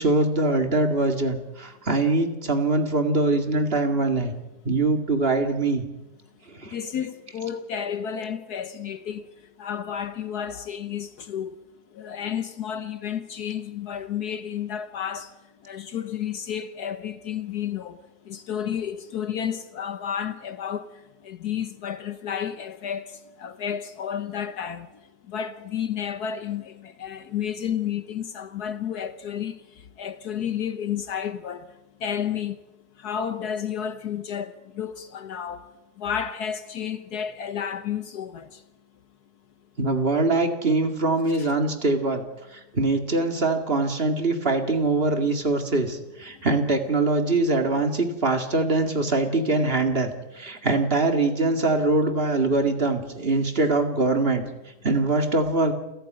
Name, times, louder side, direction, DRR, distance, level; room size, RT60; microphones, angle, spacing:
voice 1, 0.0-4.3 4.6-5.8 6.5-6.8 39.8-42.2 42.5-54.4 54.8-55.7, right 3 dB, 35° right, 2.3 m, -23 dB
voice 2, 6.7-9.3 9.6-11.6 11.9-15.3 15.6-18.0 18.2-24.9 25.3-31.7 32.0-32.6 33.0-35.7 36.0-38.6 41.4-41.5, left 8 dB, 65° left, 1.4 m, -31 dB
29.5 x 11.5 x 9.2 m
omnidirectional pair, 1.8 m